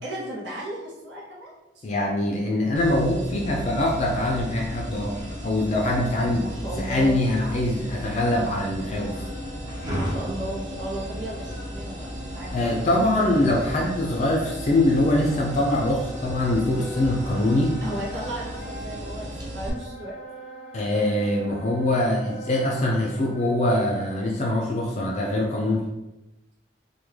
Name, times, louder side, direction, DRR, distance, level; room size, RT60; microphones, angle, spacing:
voice 1, 0.0-1.8 6.2-7.2 9.9-12.1 12.3-13.0 17.8-20.2, right 1 dB, 85° right, -4 dB, 0.7 m, -35 dB
voice 2, 1.8-5.1 5.4-6.4 6.8-9.2 12.5-17.7 20.7-25.9, left 1 dB, 40° left, -1 dB, 0.4 m, -23 dB
sound 1, 2.8-19.7, equal, 25° right, 0.6 m, -35 dB
Wind instrument woodwind instrument, 8.8-24.3, right 1 dB, 5° left, 0.8 m, -43 dB
3.4 x 2.2 x 3.1 m, 0.98 s
head